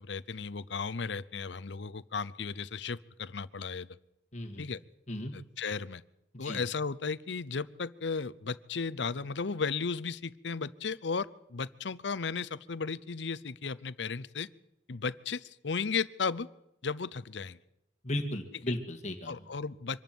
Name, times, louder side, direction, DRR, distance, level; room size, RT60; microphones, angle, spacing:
voice 1, 0.0-4.0 4.6-4.8 5.3-6.0 6.4-14.5 14.9-16.5 16.8-17.6 19.3-20.0, left 5 dB, 75° left, 17 dB, 0.7 m, -35 dB
voice 2, 4.3-4.7 5.1-5.3 6.3-6.6 18.0-19.4, left 1 dB, 40° left, 3 dB, 2.1 m, -35 dB
24.5 x 12.5 x 9.4 m, 0.83 s
head